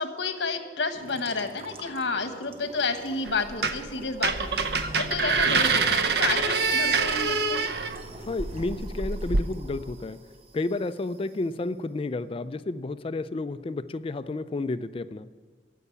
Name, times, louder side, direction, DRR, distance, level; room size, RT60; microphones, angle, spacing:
voice 1, 0.0-7.6, left 4 dB, 75° left, 7 dB, 1.3 m, -31 dB
sound 1, 0.9-11.4, right 1 dB, 35° right, 0.9 m, -44 dB
sound 2, 3.3-3.9 4.2-9.4, right 4 dB, 60° right, 0.7 m, -25 dB
voice 2, 8.2-10.3 10.5-15.3, left 2 dB, 30° left, 13 dB, 0.3 m, -31 dB
15.0 x 5.6 x 9.7 m, 1.5 s
head